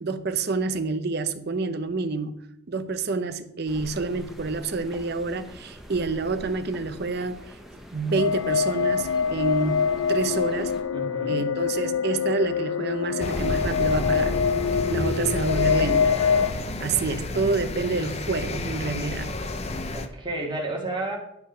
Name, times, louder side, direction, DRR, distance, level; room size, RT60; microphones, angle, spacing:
voice 1, 0.0-2.4 2.7-7.5 7.9-10.8 11.3-14.4 14.9-16.1 16.8-19.3, right 3 dB, 50° right, 0.7 m, -28 dB
sound 1, 3.7-10.8, equal, ahead, 1.0 m, -44 dB
sound 2, 8.1-16.5, left 6 dB, 85° left, 0.5 m, -25 dB
voice 2, 10.9-11.4 17.0-17.9 19.9-21.2, right 2 dB, 25° right, 2.0 m, -33 dB
sound 3, 13.2-20.1, left 2 dB, 30° left, 0.7 m, -31 dB
10.5 x 5.4 x 5.6 m
head